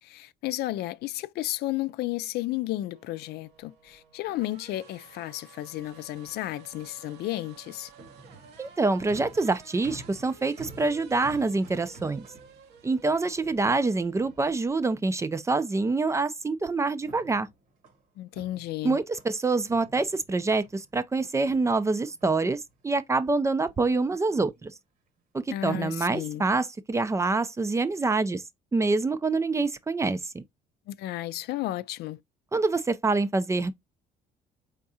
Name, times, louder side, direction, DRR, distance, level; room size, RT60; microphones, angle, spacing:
voice 1, 0.0-7.9 18.2-19.0 25.5-26.5 30.9-32.2, left 15 dB, 75° left, 0.4 m, -33 dB
sound 1, 2.9-15.2, right 7 dB, 80° right, 1.1 m, -53 dB
sound 2, 7.5-15.0 16.1-16.6 16.9-19.4 19.7-20.9 21.4-23.1 23.5-24.0 24.3-24.6 25.4-25.7 26.2-26.5, right 2 dB, 55° right, 1.2 m, -51 dB
voice 2, 8.6-12.3 12.8-17.5 18.8-24.7 25.3-28.4 28.7-30.4 32.5-33.7, right 3 dB, 15° right, 0.4 m, -26 dB
4.6 x 3.6 x 2.7 m
cardioid pair, 110°, 17 cm